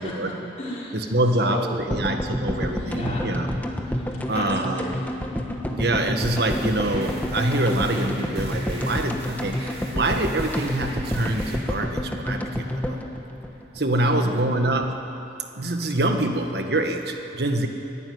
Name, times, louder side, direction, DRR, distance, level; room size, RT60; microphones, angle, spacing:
voice 1, 0.0-1.0 1.3-1.8 2.6-3.3 3.8-5.2 14.2-14.3, left 1 dB, 35° left, -7 dB, 5.2 m, -34 dB
voice 2, 0.9-3.6 4.3-4.9 5.7-13.0 13.7-15.0 15.5-17.7, right 1 dB, 60° right, 5 dB, 1.5 m, -25 dB
sound 1, 1.9-14.1 14.4-14.5 14.6-14.7, left 1 dB, 10° left, 1.2 m, -29 dB
sound 2, 6.2-11.6, right 1 dB, 35° right, 3.7 m, -39 dB
23.0 x 12.0 x 9.5 m, 2.9 s
head